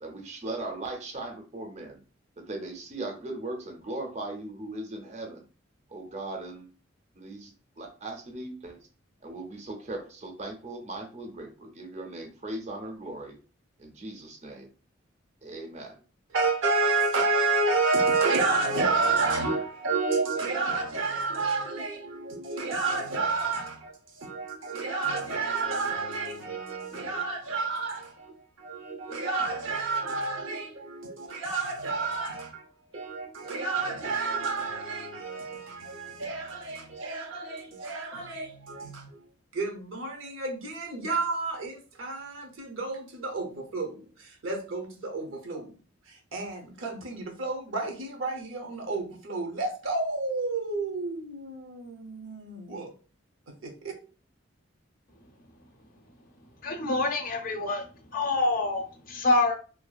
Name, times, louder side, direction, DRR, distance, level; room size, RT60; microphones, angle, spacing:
voice 1, 0.0-2.0 2.4-5.5 5.9-6.7 7.2-8.8 9.2-13.4 13.8-14.7 15.4-16.0, right 2 dB, 35° right, 0.5 m, -38 dB
voice 2, 16.3-39.2 39.5-45.7 46.1-52.9 53.5-54.0, right 3 dB, 75° right, 0.6 m, -30 dB
voice 3, 56.6-59.5, left 2 dB, 45° left, 0.5 m, -26 dB
2.6 x 2.3 x 2.2 m
head